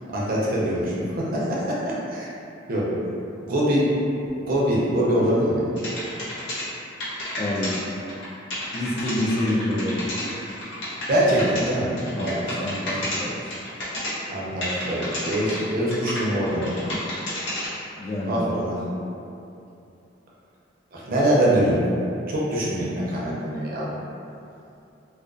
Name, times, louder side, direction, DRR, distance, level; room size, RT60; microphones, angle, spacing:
voice 1, 0.1-2.3 2.7-2.9 3.4-3.9 4.4-5.6 11.1-12.5 14.3-16.8 18.2-18.8 20.9-21.9 22.3-24.0, equal, 50° right, -6 dB, 0.5 m, -23 dB
sound 1, 5.8-6.6 7.0-7.8 8.1-8.3 8.5-11.7 12.0-13.2 13.5-14.1 14.6-15.6 15.9-17.7, left 1 dB, 90° left, 0.7 m, -31 dB
voice 2, 7.4-7.7 8.7-10.1 12.2-13.6 18.0-18.4, left 1 dB, 35° left, -4 dB, 0.3 m, -27 dB
2.3 x 2.2 x 2.4 m, 2.7 s
head